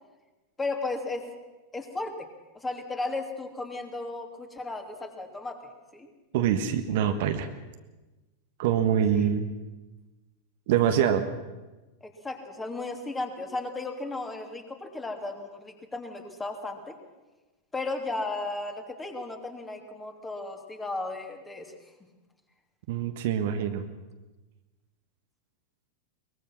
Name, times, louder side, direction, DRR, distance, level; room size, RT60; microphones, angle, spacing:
voice 1, 0.6-1.3 1.7-2.3 2.5-5.6 5.9-6.1 9.1-9.3 12.0-16.9 17.7-21.7, left 2 dB, 10° left, 4 dB, 2.8 m, -35 dB
voice 2, 6.3-7.5 8.6-9.5 10.7-11.3 22.9-23.8, right 9 dB, 50° right, 7 dB, 1.5 m, -25 dB
22.5 x 21.0 x 6.0 m, 1.1 s
figure-of-eight pair, 90°, 0 cm